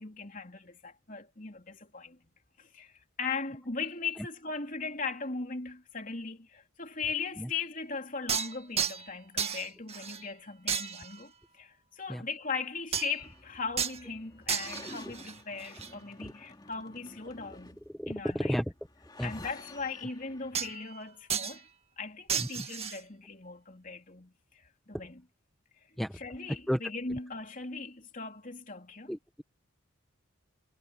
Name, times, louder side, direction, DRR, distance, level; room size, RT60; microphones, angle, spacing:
voice 1, 0.0-2.2 2.6-17.8 18.1-18.5 19.2-21.7 22.0-25.2 26.2-29.1, left 4 dB, 40° left, 3.5 m, -39 dB
sound 1, 8.3-9.1 9.4-10.3 10.7-11.2 12.9-13.2 13.8-14.0 14.5-15.9 20.5-21.0 21.3-21.6 22.3-23.0, right 7 dB, 30° right, 2.1 m, -33 dB
sound 2, 13.0-20.8, left 2 dB, 20° left, 3.0 m, -51 dB
voice 2, 17.9-18.6 19.2-19.3 22.4-22.7 26.0-26.2 26.7-26.8 27.1-27.2 29.1-29.4, equal, ahead, 1.2 m, -33 dB
head